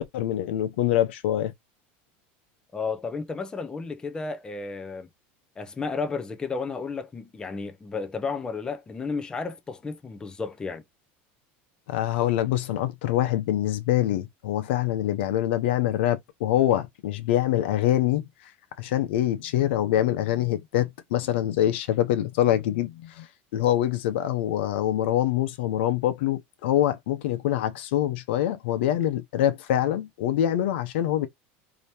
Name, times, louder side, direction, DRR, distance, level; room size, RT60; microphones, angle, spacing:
voice 1, 0.1-1.5 11.9-18.3 18.8-23.3 23.5-31.3, left 12 dB, 85° left, 0.8 m, -25 dB
voice 2, 2.7-5.1 5.6-10.8, left 4 dB, 15° left, 0.7 m, -32 dB
5.0 x 2.9 x 2.8 m
supercardioid pair, 150°, 6 cm